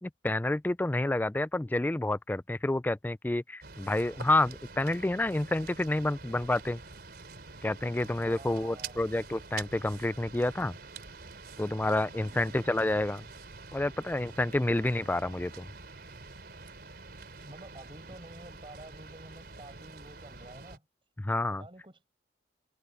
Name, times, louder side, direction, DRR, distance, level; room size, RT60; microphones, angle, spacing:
voice 1, 0.0-6.8 7.6-10.7 11.6-13.3 13.7-15.7 21.2-21.6, left 2 dB, 10° left, 0.3 m, -29 dB
sound 1, 3.6-20.8, right 4 dB, 60° right, 3.8 m, -47 dB
voice 2, 8.2-9.0 12.2-12.6 17.4-20.8 21.6-22.0, right 1 dB, 30° right, 6.8 m, -50 dB
head